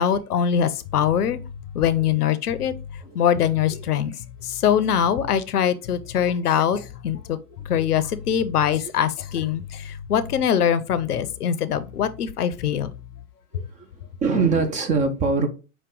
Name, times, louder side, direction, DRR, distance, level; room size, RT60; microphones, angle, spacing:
voice 1, 0.0-1.4 1.7-2.7 3.1-4.2 4.4-7.4 7.7-12.9 13.5-13.6, left 9 dB, 90° left, 0.6 m, -23 dB
sound 1, 0.8-5.5 5.8-6.4 6.7-11.4 11.7-12.3 12.6-13.3, left 8 dB, 40° left, 0.4 m, -40 dB
voice 2, 13.5-15.5, right 4 dB, 20° right, 0.4 m, -24 dB
5.8 x 2.2 x 3.7 m
hypercardioid pair, 105°, 44 cm